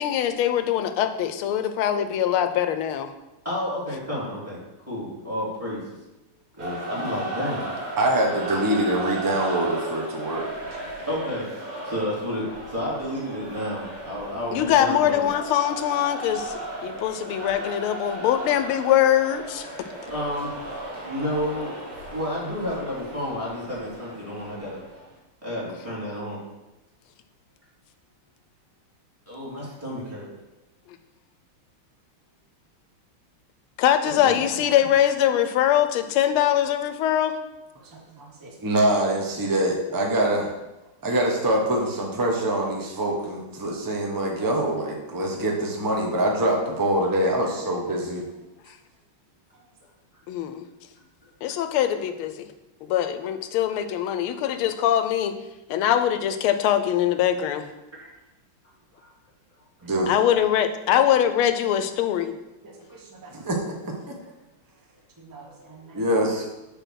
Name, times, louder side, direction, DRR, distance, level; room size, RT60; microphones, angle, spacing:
voice 1, 0.0-3.1 14.5-19.7 33.8-37.3 50.3-50.7 51.4-52.5 52.8-55.3 55.7-57.6 60.1-62.3, left 10 dB, 80° left, 9 dB, 1.5 m, -22 dB
voice 2, 3.4-4.6 4.9-5.8 6.6-7.7 10.8-11.4 11.8-15.3 20.1-21.7 22.1-24.8 25.4-26.4 29.3-30.3 34.0-34.7 47.1-47.2 50.4-50.5 58.0-58.1 58.9-59.1 65.3-65.9, left 1 dB, 5° right, -7 dB, 2.5 m, -31 dB
sound 1, 6.6-25.1, right 2 dB, 70° right, 2.9 m, -36 dB
voice 3, 8.0-10.5 38.2-40.5 41.0-48.2 59.8-60.1 62.6-63.9 65.2-66.5, right 1 dB, 30° right, 0 dB, 0.4 m, -25 dB
6.9 x 4.1 x 6.2 m, 0.99 s
omnidirectional pair, 2.3 m